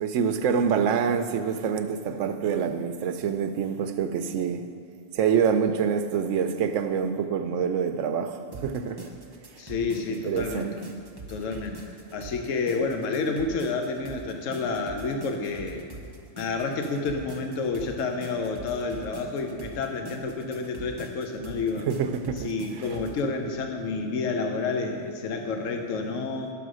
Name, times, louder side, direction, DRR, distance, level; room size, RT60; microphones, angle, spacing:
voice 1, 0.0-4.6 5.1-9.0 10.1-10.7 21.9-22.5, right 7 dB, 70° right, 0.9 m, -26 dB
sound 1, 8.5-23.2, right 2 dB, 20° right, 0.9 m, -44 dB
voice 2, 9.6-10.7 11.3-11.8 12.1-15.9 16.4-21.9 22.3-26.5, left 4 dB, 75° left, 1.1 m, -29 dB
9.9 x 7.0 x 6.2 m
omnidirectional pair, 1.3 m